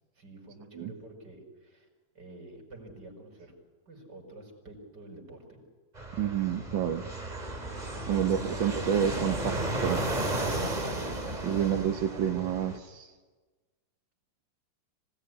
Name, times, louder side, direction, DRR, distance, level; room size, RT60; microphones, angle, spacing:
voice 1, 0.2-1.9 2.1-3.5 3.9-5.6 7.9-8.6 8.9-9.4 10.8-12.2, right 2 dB, 60° right, 3 dB, 5.7 m, -48 dB
Fixed-wing aircraft airplane, 5.9-12.8, right 2 dB, 20° right, 2.3 m, -34 dB
voice 2, 6.2-7.1 8.1-9.6 9.8-10.1 11.4-13.1, right 9 dB, 85° right, 4 dB, 1.8 m, -29 dB
26.0 x 18.0 x 9.8 m, 1.3 s
omnidirectional pair, 2.0 m